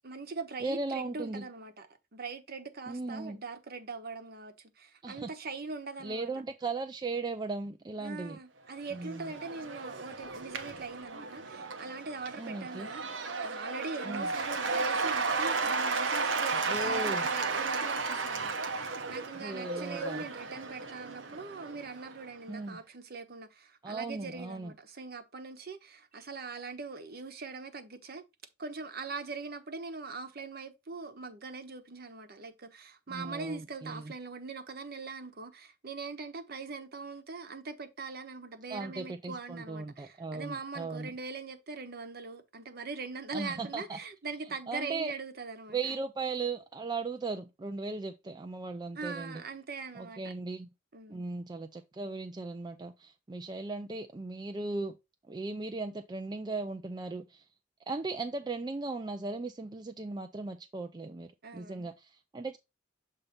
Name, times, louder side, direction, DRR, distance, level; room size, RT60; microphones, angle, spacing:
voice 1, 0.0-1.9 2.1-6.4 8.0-28.2 28.6-46.0 48.9-50.3 50.9-51.2 61.4-61.9, right 4 dB, 55° right, 1.0 m, -42 dB
voice 2, 0.6-1.4 2.9-3.4 5.0-5.3 6.0-8.4 8.9-9.3 12.4-12.9 14.0-14.3 16.7-17.3 19.3-20.3 22.5-22.8 23.8-24.7 33.1-34.1 38.7-41.1 43.3-44.0 44.7-45.1 45.7-49.4 49.9-50.7 51.1-55.0 55.3-57.4 57.9-62.6, right 3 dB, 20° right, 0.4 m, -37 dB
Cheering / Applause / Crowd, 8.8-22.3, right 4 dB, 90° right, 0.9 m, -34 dB
7.0 x 2.7 x 5.0 m
head